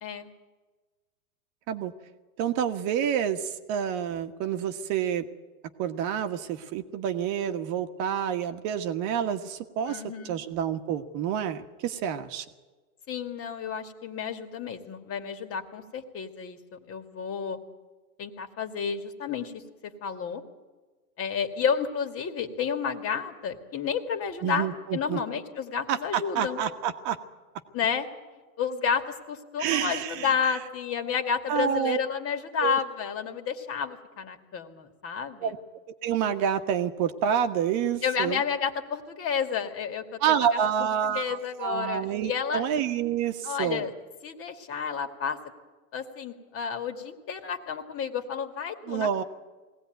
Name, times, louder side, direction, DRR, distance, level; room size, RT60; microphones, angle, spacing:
voice 1, 2.4-5.2 5.8-12.4 24.4-25.2 25.9-27.2 29.6-30.6 31.5-32.0 32.6-32.8 35.4-35.6 36.0-38.4 40.2-43.8 48.9-49.2, right 9 dB, 40° right, 7 dB, 1.5 m, -28 dB
voice 2, 9.9-10.4 13.1-17.6 18.2-20.4 21.2-26.6 27.7-28.1 28.6-29.0 29.3-35.5 38.0-40.6 41.1-42.6 43.4-43.9 44.2-45.4 45.9-49.2, left 6 dB, 30° left, 7 dB, 2.3 m, -31 dB
21.5 x 17.5 x 9.3 m, 1.3 s
hypercardioid pair, 115°, 44 cm